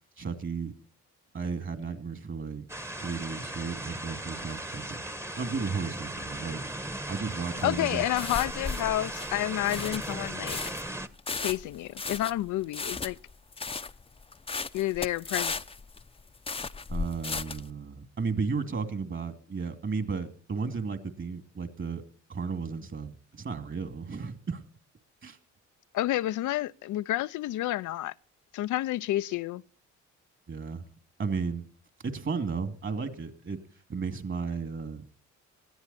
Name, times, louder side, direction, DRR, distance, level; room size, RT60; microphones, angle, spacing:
voice 1, 0.2-0.7 1.3-2.6 3.0-5.0 5.4-6.6 6.9-8.0 16.9-22.0 22.3-24.6 25.2-25.4 30.5-30.9 31.2-31.6 32.0-33.6 33.9-35.0, right 5 dB, 40° right, 2.6 m, -34 dB
sound 1, 2.7-11.1, right 1 dB, 10° right, 1.2 m, -37 dB
voice 2, 7.6-10.6 11.4-13.2 14.7-15.6 25.9-28.1 28.5-29.6, left 15 dB, 80° left, 0.6 m, -30 dB
sound 2, 7.6-17.7, left 4 dB, 20° left, 0.7 m, -36 dB
20.5 x 14.0 x 4.2 m
cardioid pair, 90°, 30 cm